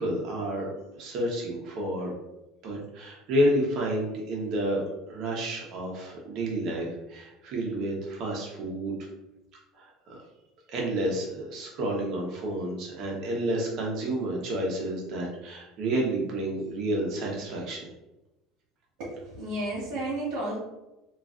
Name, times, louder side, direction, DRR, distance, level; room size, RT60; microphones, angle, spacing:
voice 1, 0.0-2.1 2.6-4.8 5.1-8.9 10.1-10.2 10.7-17.9, right 1 dB, 50° right, -2 dB, 0.8 m, -30 dB
voice 2, 19.0-20.6, right 1 dB, 75° right, -7 dB, 1.1 m, -32 dB
3.1 x 2.3 x 2.4 m, 0.96 s
cardioid pair, 160°, 0 cm